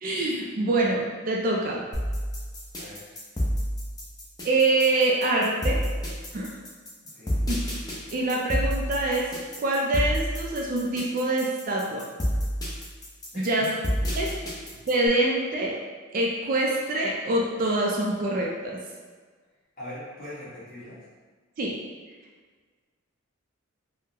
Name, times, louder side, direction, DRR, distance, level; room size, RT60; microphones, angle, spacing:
voice 1, 0.0-1.8 4.4-5.8 6.3-6.6 7.5-7.6 8.1-9.3 9.6-12.0 13.4-13.7 14.2-14.3 14.9-15.7 16.1-18.8 21.6-21.7, right 2 dB, 40° right, -2 dB, 0.4 m, -25 dB
sound 1, 1.9-15.1, equal, 20° left, 0.5 m, -29 dB
voice 2, 2.8-3.2 7.0-7.4 13.3-14.1 19.8-21.0, left 1 dB, 40° left, -10 dB, 1.3 m, -42 dB
3.7 x 2.1 x 2.7 m, 1.5 s
head